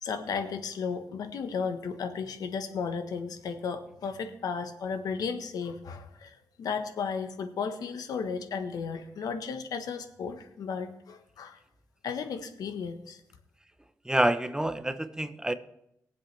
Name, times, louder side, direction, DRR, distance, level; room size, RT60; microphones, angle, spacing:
voice 1, 0.0-11.6 12.0-13.2, left 5 dB, 80° left, 8 dB, 1.3 m, -34 dB
voice 2, 14.1-15.5, right 1 dB, 10° right, 11 dB, 0.8 m, -27 dB
21.0 x 7.6 x 3.4 m, 0.78 s
cardioid pair, 75°, 6 cm